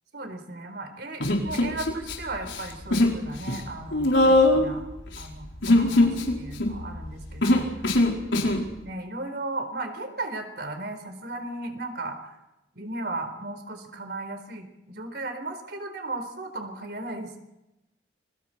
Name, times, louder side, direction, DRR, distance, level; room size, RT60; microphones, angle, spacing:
voice 1, 0.1-4.8 5.2-7.9 8.4-8.5 8.8-12.4 12.8-17.4, right 2 dB, 60° right, 6 dB, 4.4 m, -36 dB
Human voice, 1.2-2.2 2.4-3.2 3.4-8.6, left 1 dB, 85° left, 4.8 m, -22 dB
29.5 x 23.5 x 4.5 m, 0.94 s
head